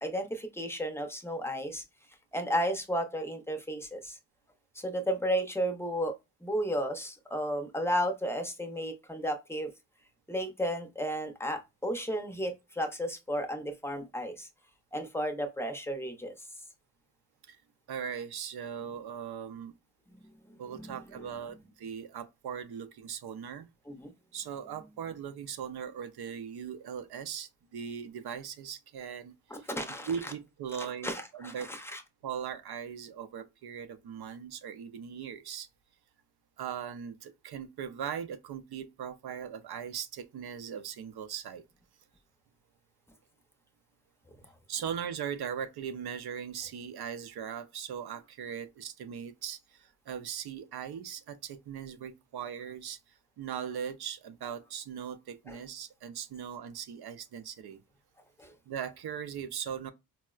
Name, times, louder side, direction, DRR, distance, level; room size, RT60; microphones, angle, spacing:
voice 1, 0.0-1.8 2.3-4.2 4.8-6.1 6.4-9.7 10.3-14.5 14.9-16.3 20.7-21.4 23.9-24.1 24.7-24.9 29.5-30.3 30.8-32.0 55.5-55.6 58.4-58.5, equal, 5° left, 0.5 m, -33 dB
voice 2, 17.9-19.7 20.6-23.7 24.3-31.7 32.2-35.7 36.6-41.6 44.7-53.0 53.4-57.8 58.7-59.9, right 8 dB, 90° right, 0.5 m, -39 dB
4.3 x 2.0 x 2.3 m
wide cardioid pair, 145°, 38 cm